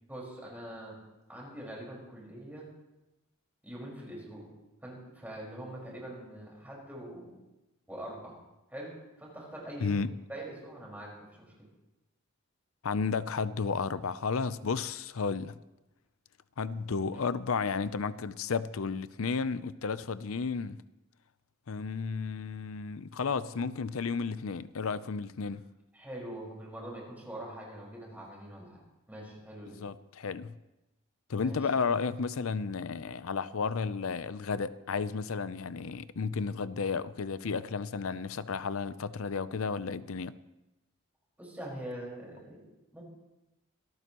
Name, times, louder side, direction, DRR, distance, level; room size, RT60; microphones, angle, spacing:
voice 1, 0.1-1.0 1.3-2.7 3.6-4.5 4.8-7.4 7.9-8.3 8.7-8.9 9.2-10.0 10.3-11.5 25.9-28.8 29.1-29.8 31.3-31.6 41.4-42.6 42.9-43.0, right 1 dB, 10° right, 4.9 m, -43 dB
voice 2, 9.8-10.1 12.8-15.6 16.6-20.8 21.7-25.6 29.8-30.5 31.3-40.4, left 5 dB, 75° left, 0.6 m, -33 dB
25.5 x 13.5 x 3.0 m
head